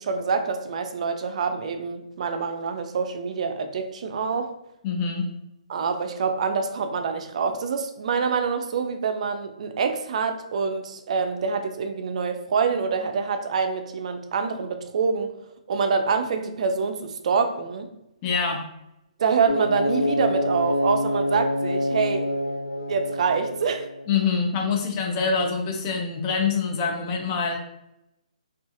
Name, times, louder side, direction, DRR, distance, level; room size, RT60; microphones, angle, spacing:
voice 1, 0.0-4.5 5.7-15.3 15.7-17.9 19.2-22.3 22.9-23.9, right 5 dB, 60° right, 7 dB, 0.4 m, -26 dB
voice 2, 4.8-5.3 18.2-18.6 24.1-27.6, left 5 dB, 30° left, 2 dB, 0.5 m, -25 dB
sound 1, 19.5-24.2, left 1 dB, 90° left, 0.4 m, -26 dB
2.5 x 2.3 x 2.5 m, 0.83 s
hypercardioid pair, 140°, 4 cm